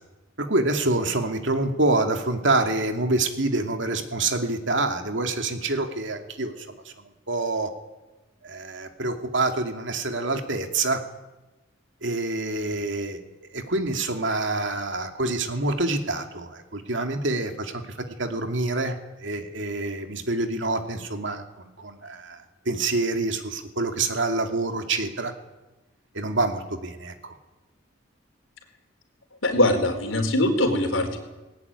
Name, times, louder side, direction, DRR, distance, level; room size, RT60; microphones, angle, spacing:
voice 1, 0.4-6.7 7.3-7.7 8.4-11.0 12.0-13.2 13.5-17.8 18.2-22.4 22.7-25.3 26.1-27.3, right 2 dB, 65° right, 5 dB, 2.7 m, -26 dB
voice 2, 29.4-31.2, left 1 dB, 90° left, 5 dB, 4.3 m, -22 dB
19.5 x 18.0 x 9.7 m, 1.1 s
head